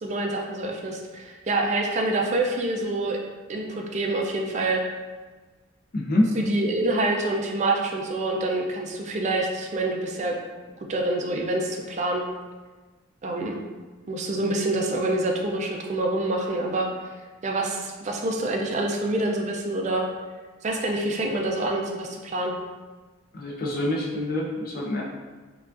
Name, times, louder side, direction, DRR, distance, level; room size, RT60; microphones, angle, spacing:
voice 1, 0.0-3.2 3.5-4.8 6.4-10.3 10.9-12.2 13.2-13.6 14.1-16.9 17.4-20.1 20.6-22.6, right 2 dB, 35° right, 1 dB, 0.3 m, -26 dB
voice 2, 5.9-6.4 23.3-25.0, left 1 dB, 45° left, -3 dB, 0.5 m, -25 dB
4.6 x 2.3 x 2.5 m, 1.3 s
head